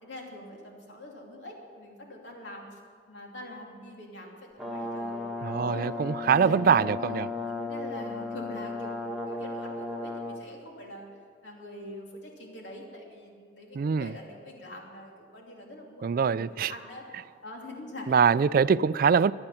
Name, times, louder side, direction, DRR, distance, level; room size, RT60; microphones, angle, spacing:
voice 1, 0.0-2.8 3.1-5.9 6.2-6.5 7.0-11.1 11.4-17.0 17.4-18.1 18.4-18.5, left 1 dB, 85° left, 0 dB, 3.0 m, -44 dB
Brass instrument, 4.6-10.4, left 2 dB, ahead, 1.3 m, -35 dB
voice 2, 5.4-7.3 13.7-14.1 16.0-16.7 18.1-19.3, right 6 dB, 55° right, 18 dB, 0.3 m, -23 dB
24.0 x 8.9 x 5.8 m, 2.1 s
head